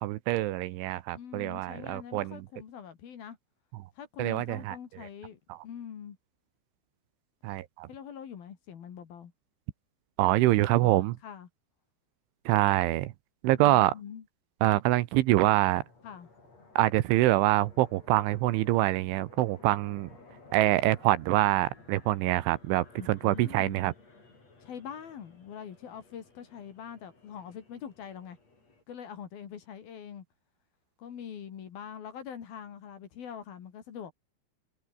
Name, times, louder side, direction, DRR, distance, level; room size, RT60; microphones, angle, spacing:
voice 1, 0.0-2.4 4.2-4.8 5.5-5.6 7.4-7.9 10.2-11.1 12.5-13.1 13.4-13.9 14.6-15.8 16.8-20.1 20.5-23.9, right 16 dB, 75° right, 3.2 m, -25 dB
voice 2, 1.1-3.4 4.0-6.2 7.9-9.3 10.8-11.5 13.6-14.3 16.0-16.3 23.0-23.8 24.6-28.4 28.9-30.3 31.0-34.1, left 8 dB, 55° left, 3.8 m, -44 dB
sound 1, 15.6-28.8, left 3 dB, 30° left, 8.3 m, -56 dB
omnidirectional pair, 5.8 m